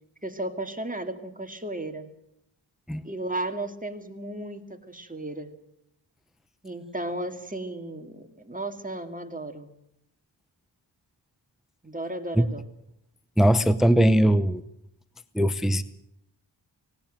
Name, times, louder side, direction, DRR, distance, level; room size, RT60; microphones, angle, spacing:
voice 1, 0.2-2.1 3.0-5.5 6.6-9.7 11.8-12.7, right 1 dB, 15° right, 6 dB, 2.4 m, -34 dB
voice 2, 13.4-14.6 15.3-15.8, right 1 dB, ahead, 14 dB, 0.8 m, -20 dB
18.5 x 18.0 x 9.1 m, 0.77 s
wide cardioid pair, 70°, 48 cm